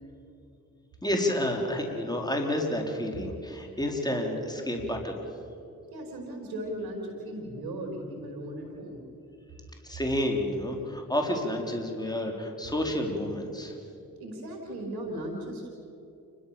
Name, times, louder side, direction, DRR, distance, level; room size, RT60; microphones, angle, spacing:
voice 1, 1.0-5.2 9.8-13.8, left 1 dB, 10° left, 2 dB, 4.2 m, -30 dB
voice 2, 5.9-9.0 14.2-15.7, right 1 dB, 80° right, 1 dB, 3.4 m, -37 dB
29.5 x 13.5 x 7.2 m, 2.7 s
supercardioid pair, 45°, 36 cm